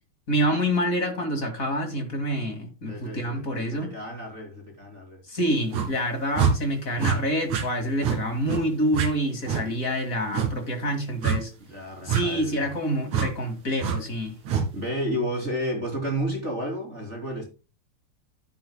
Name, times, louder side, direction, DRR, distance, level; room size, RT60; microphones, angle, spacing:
voice 1, 0.3-3.9 5.3-11.5 12.0-14.4, equal, 30° left, 2.4 m, -27 dB
voice 2, 2.9-5.2 11.6-12.7 14.7-17.5, equal, 20° right, 3.3 m, -32 dB
sound 1, 5.7-5.9 6.3-6.5 7.0-7.2 7.5-7.7 8.0-8.2 8.5-8.6 8.9-9.1 9.5-9.6 10.3-10.5 11.2-11.4 12.1-12.2 13.1-13.3 13.8-14.0 14.5-14.7, right 7 dB, 65° right, 3.3 m, -24 dB
11.5 x 10.5 x 2.2 m
omnidirectional pair, 3.5 m